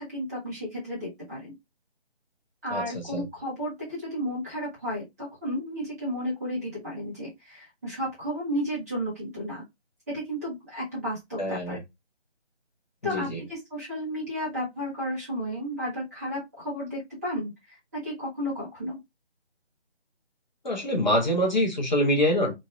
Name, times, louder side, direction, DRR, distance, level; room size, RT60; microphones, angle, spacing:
voice 1, 0.0-1.5 2.6-9.6 10.1-11.8 13.0-17.5 17.9-19.0, equal, 15° right, 1.1 m, -33 dB
voice 2, 2.7-3.2 11.4-11.8 13.0-13.4 20.6-22.5, equal, 40° left, 0.9 m, -25 dB
3.1 x 2.6 x 2.3 m
figure-of-eight pair, 160°, 34 cm